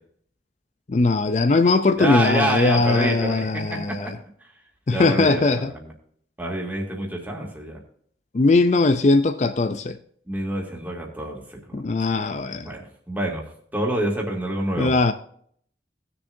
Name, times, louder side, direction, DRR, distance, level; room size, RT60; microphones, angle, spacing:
voice 1, 0.9-4.2 4.9-5.7 8.3-10.0 11.7-12.7 14.8-15.1, left 3 dB, 40° left, 0.4 m, -20 dB
voice 2, 2.0-4.1 4.9-5.7 6.4-7.8 10.3-12.1 12.6-13.4 13.7-14.9, right 1 dB, 10° right, 2.3 m, -27 dB
18.5 x 6.9 x 2.7 m
head